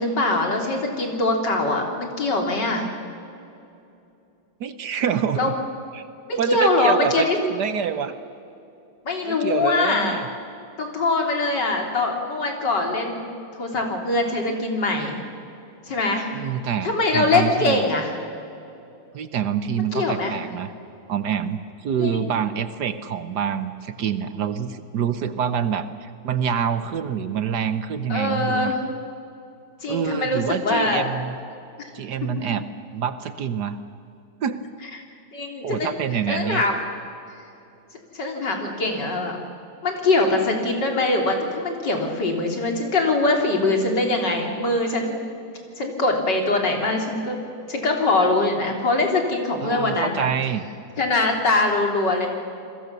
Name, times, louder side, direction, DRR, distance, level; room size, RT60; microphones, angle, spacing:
voice 1, 0.0-2.9 5.4-5.5 6.3-7.4 9.0-10.2 10.8-13.3 13.6-15.2 15.9-16.3 16.8-18.2 19.9-20.4 22.0-22.3 28.1-28.8 29.8-31.0 35.3-35.9 36.3-36.8 38.1-39.4 39.8-45.2 45.8-47.4 47.7-50.3 51.0-52.3, left 2 dB, 60° left, 2 dB, 3.8 m, -22 dB
voice 2, 4.6-5.5 5.9-6.1 6.4-8.1 9.2-10.3 16.3-17.8 19.1-20.7 21.1-28.7 29.9-31.4 31.9-32.7 32.9-33.8 34.4-34.6 35.6-36.6 49.6-50.7, right 8 dB, 65° right, 12 dB, 1.3 m, -26 dB
28.5 x 21.5 x 6.8 m, 2.7 s
omnidirectional pair, 2.1 m